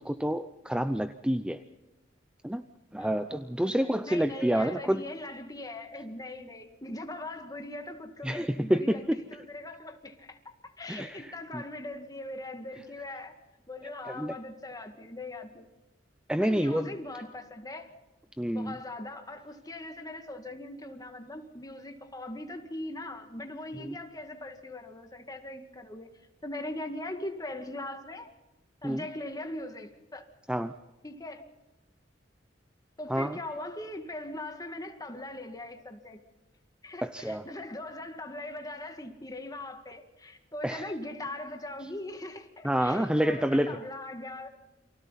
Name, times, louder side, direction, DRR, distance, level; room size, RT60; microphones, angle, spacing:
voice 1, 0.0-1.6 2.4-2.6 2.9-5.0 8.2-9.2 10.9-11.6 14.0-14.3 16.3-16.9 18.4-18.8 23.8-24.0 28.8-29.1 30.5-30.7 33.1-33.4 37.0-37.4 40.6-40.9 42.6-43.8, equal, 5° right, 0.6 m, -28 dB
voice 2, 3.0-9.0 9.3-13.4 13.7-15.6 16.4-17.9 18.5-26.1 26.4-28.3 28.8-30.3 31.0-31.5 33.0-36.2 36.8-44.5, left 1 dB, 20° left, 2.1 m, -40 dB
30.0 x 24.5 x 4.2 m
head